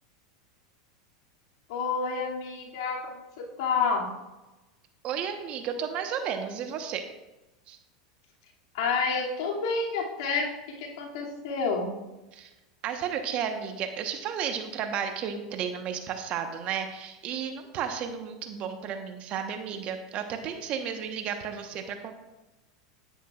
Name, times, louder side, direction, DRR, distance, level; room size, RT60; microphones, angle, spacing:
voice 1, 1.7-3.0 3.6-4.1 8.7-10.5 10.8-11.9, left 4 dB, 65° left, -2 dB, 2.5 m, -28 dB
voice 2, 5.0-7.0 7.7-7.8 12.3-12.5 12.8-22.1, right 8 dB, 45° right, 6 dB, 1.2 m, -33 dB
10.0 x 9.8 x 2.5 m, 1.0 s
hypercardioid pair, 95°, 3 cm